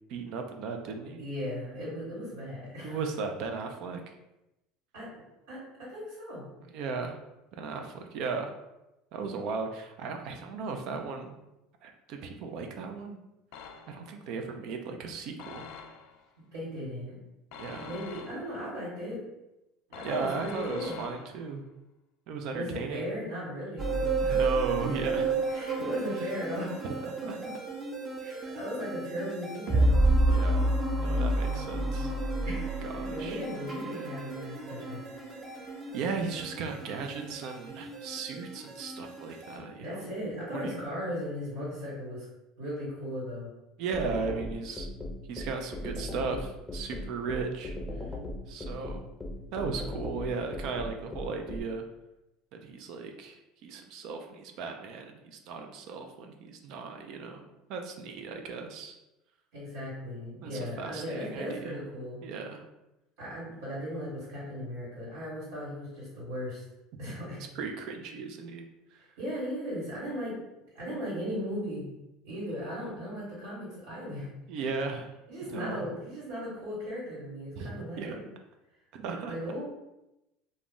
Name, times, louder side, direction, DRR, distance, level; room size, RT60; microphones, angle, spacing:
voice 1, 0.1-1.2 2.8-4.1 6.7-7.2 7.5-8.5 9.1-11.4 11.8-13.2 13.9-15.7 17.6-17.9 20.0-21.6 22.3-23.1 24.3-25.3 26.8-27.4 30.3-30.7 31.0-32.1 32.8-33.4 35.9-40.1 40.5-40.8 43.8-44.9 45.3-47.8 48.5-49.0 49.5-51.8 52.6-58.9 60.4-61.8 62.2-62.7 67.6-68.7 68.9-69.0 74.5-75.1 75.5-75.8 77.6-78.2 78.9-79.3, right 4 dB, 65° right, 4 dB, 0.4 m, -36 dB
voice 2, 1.2-3.0 4.9-5.1 5.5-6.5 16.5-17.2 17.8-19.2 19.9-21.1 22.5-24.4 24.8-25.0 25.5-26.9 27.2-27.5 28.2-30.1 32.4-35.3 39.6-42.3 42.6-43.5 59.5-62.2 63.2-66.6 67.0-67.4 69.2-70.3 70.7-71.8 72.2-74.3 75.3-78.3 79.3-79.6, equal, 85° right, -7 dB, 1.2 m, -37 dB
sound 1, 13.5-14.2 15.4-16.3 17.5-18.7 19.9-21.6, left 6 dB, 70° left, 0.3 m, -46 dB
sound 2, 23.8-39.6, right 2 dB, 30° right, 0.7 m, -30 dB
sound 3, 43.9-51.6, left 1 dB, 10° left, 0.6 m, -37 dB
2.4 x 2.0 x 3.6 m, 0.93 s
hypercardioid pair, 90°, 0 cm